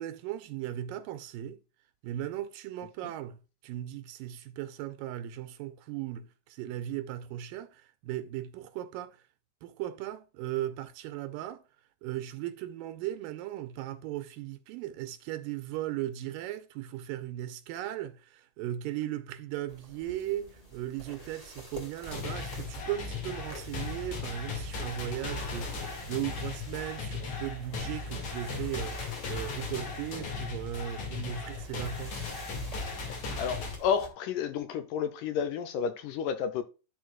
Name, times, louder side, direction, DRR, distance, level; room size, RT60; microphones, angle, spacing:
voice 1, 0.0-1.6 2.0-9.2 9.6-11.6 12.0-32.3, right 12 dB, 80° right, 2.2 m, -37 dB
sound 1, 19.7-34.1, equal, 20° left, 0.9 m, -49 dB
sound 2, 22.0-33.8, left 4 dB, 55° left, 3.2 m, -37 dB
voice 2, 33.4-36.6, left 7 dB, 80° left, 2.1 m, -31 dB
13.5 x 4.6 x 2.3 m
omnidirectional pair, 4.1 m